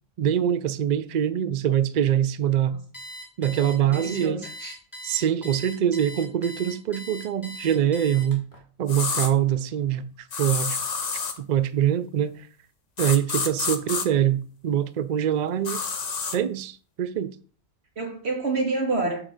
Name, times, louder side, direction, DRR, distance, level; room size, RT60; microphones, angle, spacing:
voice 1, 0.2-2.8 3.4-4.4 5.0-8.4 8.8-10.8 11.4-12.5 13.0-15.8 16.3-17.3, right 10 dB, 80° right, 0.4 m, -24 dB
Alarm, 2.9-8.6, left 1 dB, 15° left, 1.8 m, -40 dB
voice 2, 3.5-4.8 18.0-19.2, right 3 dB, 50° right, 2.2 m, -28 dB
sound 1, 8.9-9.3 10.3-11.4 13.0-14.1 15.6-16.4, left 5 dB, 40° left, 0.7 m, -28 dB
5.6 x 4.8 x 6.5 m
omnidirectional pair, 1.4 m